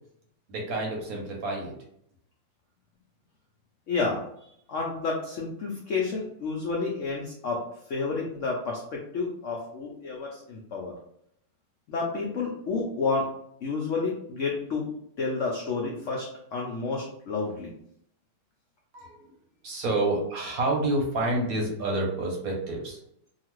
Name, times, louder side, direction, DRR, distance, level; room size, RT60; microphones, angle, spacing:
voice 1, 0.5-1.7 18.9-19.3 19.6-23.0, right 2 dB, 65° right, -1 dB, 1.0 m, -28 dB
voice 2, 3.9-4.2 4.7-7.6 7.9-10.9 11.9-13.3 13.6-14.9 15.2-17.7, left 4 dB, 85° left, -2 dB, 0.6 m, -30 dB
2.8 x 2.4 x 3.0 m, 0.71 s
omnidirectional pair, 1.9 m